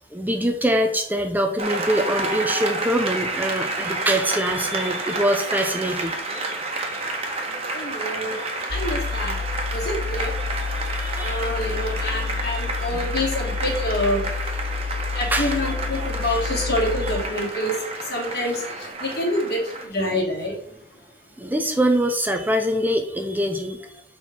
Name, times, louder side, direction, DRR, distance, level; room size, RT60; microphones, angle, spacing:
voice 1, 0.1-6.1 10.9-11.4 12.9-13.0 15.3-15.6 16.2-16.4 21.4-23.9, right 1 dB, 10° right, 4 dB, 0.7 m, -24 dB
Applause, 1.6-19.9, right 2 dB, 35° right, 1.5 m, -30 dB
voice 2, 7.7-8.3 8.7-9.4 9.7-10.3 11.2-14.2 15.1-17.8 18.1-18.6 19.0-20.5, left 1 dB, 60° left, -1 dB, 2.7 m, -26 dB
sound 1, 8.7-17.2, left 5 dB, 35° left, 0.4 m, -29 dB
7.1 x 4.4 x 5.5 m, 0.63 s
head